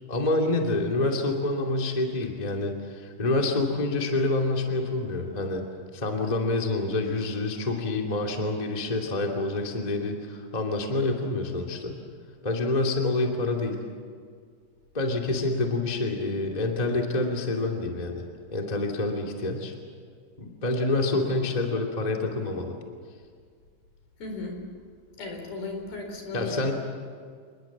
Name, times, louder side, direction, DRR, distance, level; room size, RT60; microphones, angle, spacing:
voice 1, 0.1-5.6 5.9-11.9 12.4-13.8 14.9-19.7 20.4-22.7 26.3-26.7, left 2 dB, 15° left, 1 dB, 1.9 m, -27 dB
voice 2, 24.2-24.6 25.2-26.7, left 3 dB, 65° left, 3 dB, 6.1 m, -36 dB
28.5 x 20.5 x 7.5 m, 2.1 s
omnidirectional pair, 4.7 m